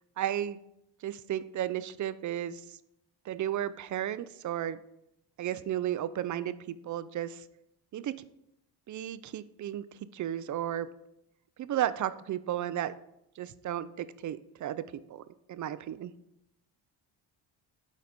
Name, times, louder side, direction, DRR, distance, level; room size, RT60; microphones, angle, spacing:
voice 1, 0.2-0.6 1.0-2.6 3.3-4.8 5.4-7.4 7.9-8.1 8.9-9.8 10.1-10.9 11.6-12.9 13.4-14.8 15.1-15.2 15.5-16.1, right 11 dB, 40° right, 15 dB, 0.4 m, -33 dB
9.7 x 4.0 x 4.2 m, 0.82 s
cardioid pair, 85°, 47 cm